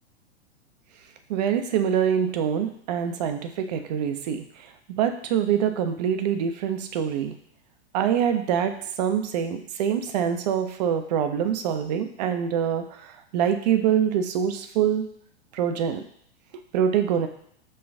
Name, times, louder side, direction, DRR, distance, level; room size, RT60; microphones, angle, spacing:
voice 1, 1.3-7.3 7.9-15.1 15.5-16.0 16.7-17.3, right 8 dB, 40° right, 7 dB, 0.4 m, -25 dB
5.2 x 2.3 x 3.5 m, 0.68 s
figure-of-eight pair, 100°, 33 cm